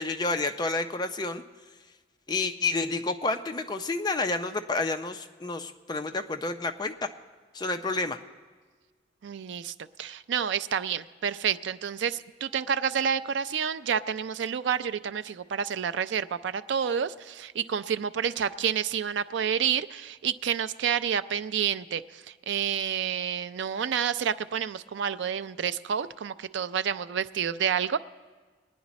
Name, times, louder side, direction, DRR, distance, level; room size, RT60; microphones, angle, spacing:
voice 1, 0.0-1.4 2.3-7.1 7.5-8.2, left 3 dB, 25° left, 7 dB, 0.5 m, -29 dB
voice 2, 9.2-28.0, right 8 dB, 80° right, 13 dB, 0.4 m, -29 dB
21.5 x 9.6 x 4.1 m, 1.4 s
head